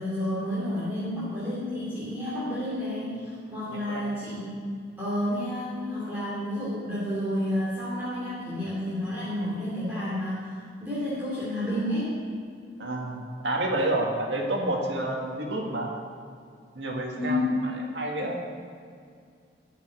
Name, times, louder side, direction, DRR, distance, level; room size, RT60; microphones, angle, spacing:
voice 1, 0.0-12.1 17.2-17.5, left 1 dB, 10° right, -10 dB, 2.8 m, -30 dB
voice 2, 3.7-4.0 12.8-15.9 16.7-18.4, right 1 dB, 80° right, 0 dB, 2.0 m, -29 dB
14.0 x 5.7 x 9.0 m, 2.2 s
head